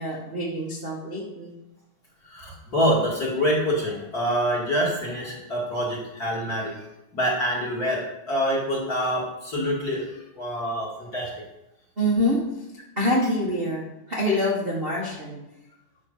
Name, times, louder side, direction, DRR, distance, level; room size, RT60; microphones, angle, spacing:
voice 1, 0.0-1.5 12.0-12.4 13.0-15.4, left 1 dB, 25° right, -5 dB, 1.3 m, -25 dB
voice 2, 2.2-6.7 7.1-11.4, equal, 30° left, -4 dB, 2.4 m, -26 dB
10.5 x 6.5 x 5.6 m, 0.90 s
omnidirectional pair, 3.7 m